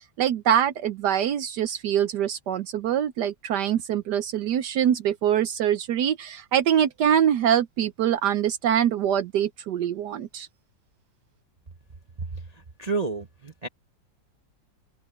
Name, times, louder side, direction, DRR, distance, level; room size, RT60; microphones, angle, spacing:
voice 1, 0.2-10.5, right 9 dB, 70° right, 1.3 m, -24 dB
voice 2, 12.2-13.7, right 4 dB, 35° right, 0.7 m, -31 dB
open air
omnidirectional pair, 1.9 m